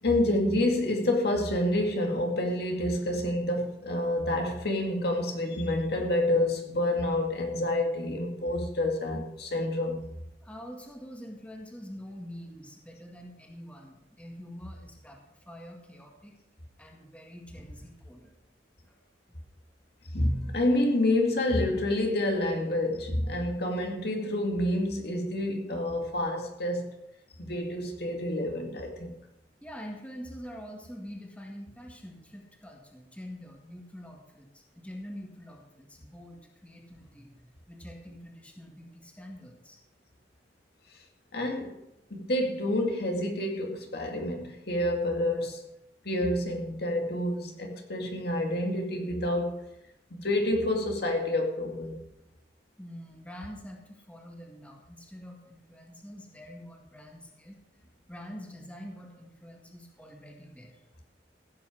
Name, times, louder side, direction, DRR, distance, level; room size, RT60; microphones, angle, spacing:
voice 1, 0.0-10.0 20.1-27.0 27.4-29.1 40.9-41.0 41.3-41.8 42.1-45.6 46.0-49.6 50.1-52.0, left 1 dB, 60° left, 2.2 m, -28 dB
voice 2, 10.4-16.3 16.8-18.3 18.9-19.0 29.6-39.8 52.8-57.6 58.1-60.9, equal, 10° left, 2.0 m, -45 dB
15.5 x 8.9 x 5.1 m
head